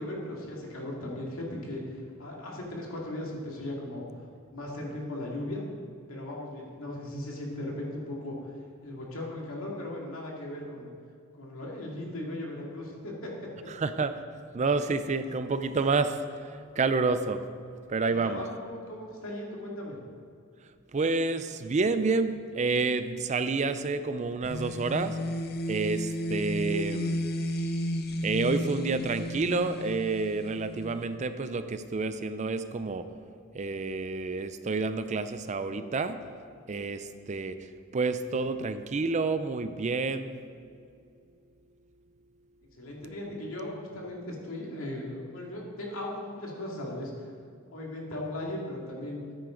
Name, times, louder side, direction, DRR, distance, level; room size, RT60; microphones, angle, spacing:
voice 1, 0.0-4.0 4.5-5.6 6.1-8.5 8.8-10.9 11.3-13.7 18.0-20.0 42.8-47.3 47.7-49.2, left 1 dB, 75° left, -2 dB, 2.3 m, -37 dB
voice 2, 13.7-14.1 14.5-17.4 17.9-18.4 20.9-25.2 25.7-27.2 27.5-27.7 28.2-33.1 33.5-36.2 36.7-40.4, right 3 dB, 35° right, 11 dB, 0.4 m, -29 dB
sound 1, 24.4-31.1, left 1 dB, 50° left, 0.7 m, -33 dB
14.0 x 9.1 x 3.8 m, 2.4 s
head